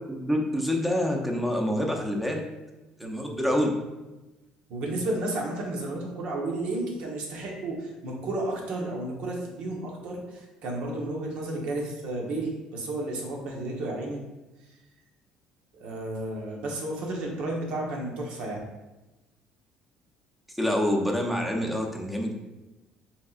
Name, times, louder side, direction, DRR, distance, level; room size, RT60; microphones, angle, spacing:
voice 1, 0.1-2.4 3.0-3.7 20.6-22.3, equal, ahead, 1 dB, 0.7 m, -26 dB
voice 2, 3.0-3.4 4.7-14.2 15.7-18.6, right 2 dB, 70° right, -1 dB, 1.1 m, -32 dB
5.2 x 3.6 x 2.5 m, 1.1 s
cardioid pair, 105°, 2 cm